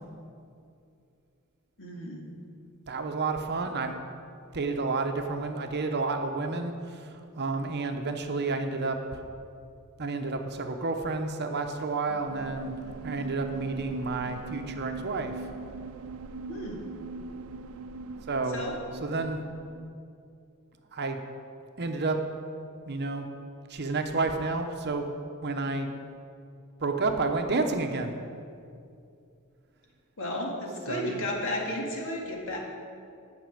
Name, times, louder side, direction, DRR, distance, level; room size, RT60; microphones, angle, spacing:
voice 1, 1.8-2.3 16.5-16.9 18.5-18.8 30.2-32.6, left 1 dB, 65° left, -1 dB, 2.0 m, -33 dB
voice 2, 2.9-4.0 4.5-9.2 10.0-12.8 13.0-15.3 18.3-18.6 19.0-19.4 20.9-21.2 21.8-22.2 22.9-23.2 23.7-25.1 25.4-25.9 26.8-28.1 30.9-31.2, right 3 dB, 50° right, 5 dB, 0.9 m, -30 dB
sound 1, 12.1-19.9, right 4 dB, 70° right, 0.4 m, -41 dB
9.5 x 6.0 x 8.4 m, 2.5 s
head